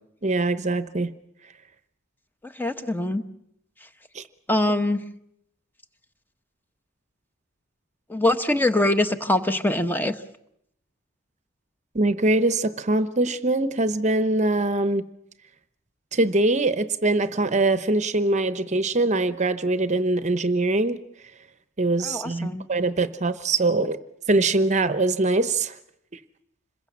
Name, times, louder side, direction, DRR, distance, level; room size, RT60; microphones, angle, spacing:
voice 1, 0.2-1.1 4.1-4.2 11.9-15.0 16.1-21.0 21.8-24.0 24.3-25.8, right 2 dB, 35° right, 12 dB, 0.9 m, -23 dB
voice 2, 2.4-3.2 4.5-5.0 8.1-10.1 22.0-22.6, left 1 dB, 10° left, 9 dB, 1.1 m, -23 dB
26.5 x 21.5 x 7.3 m, 0.77 s
head